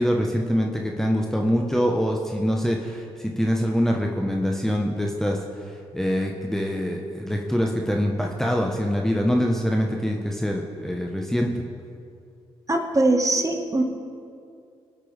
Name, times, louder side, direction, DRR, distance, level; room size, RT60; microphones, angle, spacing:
voice 1, 0.0-11.6, equal, 5° left, 0 dB, 1.3 m, -24 dB
voice 2, 12.7-13.8, right 2 dB, 25° right, 3 dB, 1.8 m, -21 dB
20.5 x 8.4 x 3.6 m, 2.4 s
hypercardioid pair, 45°, 14 cm